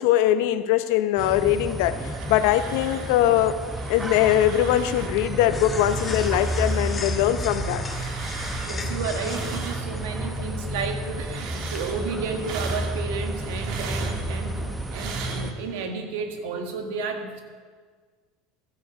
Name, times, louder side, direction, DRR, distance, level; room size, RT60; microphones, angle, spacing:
voice 1, 0.0-3.5 3.9-7.8, left 12 dB, 70° left, 11 dB, 0.7 m, -22 dB
sound 1, 1.2-15.5, right 1 dB, 10° right, 0.8 m, -31 dB
sound 2, 1.8-3.2 3.5-5.2 5.6-10.3 10.7-15.9, right 5 dB, 60° right, 1.4 m, -40 dB
sound 3, 4.9-11.8, left 4 dB, 20° left, 1.1 m, -40 dB
voice 2, 8.6-17.4, right 5 dB, 75° right, 5 dB, 1.5 m, -32 dB
14.0 x 7.7 x 5.0 m, 1.5 s
supercardioid pair, 125°, 0 cm